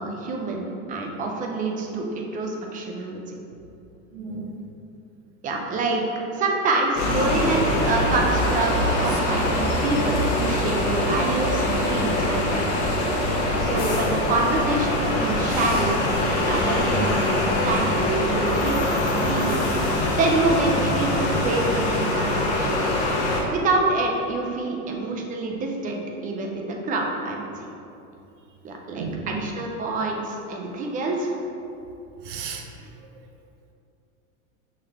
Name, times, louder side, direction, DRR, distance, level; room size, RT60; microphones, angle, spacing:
voice 1, 0.0-3.3 5.4-6.0 6.3-12.6 13.6-22.8 23.5-27.5 28.6-31.4, right 3 dB, 20° right, 1 dB, 0.4 m, -27 dB
voice 2, 4.1-4.6 9.1-9.2 21.1-21.3 29.0-29.4 32.2-32.9, right 5 dB, 60° right, 4 dB, 0.7 m, -34 dB
sound 1, 7.0-23.4, left 1 dB, 50° left, 1.1 m, -23 dB
5.8 x 3.2 x 2.8 m, 2.7 s
supercardioid pair, 125°, 41 cm